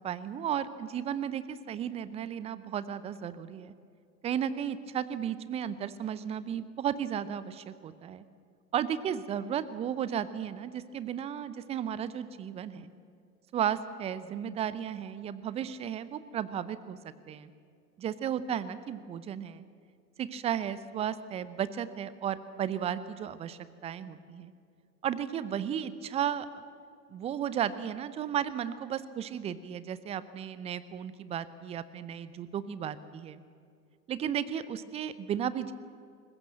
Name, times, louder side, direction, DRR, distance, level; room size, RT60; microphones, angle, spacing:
voice 1, 0.0-3.7 4.2-8.2 8.7-12.9 13.5-17.0 17.3-17.5 18.0-19.6 20.2-24.5 25.0-26.5 27.1-33.4 34.1-35.7, right 9 dB, 15° right, 15 dB, 0.6 m, -34 dB
22.0 x 20.0 x 7.7 m, 2.3 s
figure-of-eight pair, 105°, 48 cm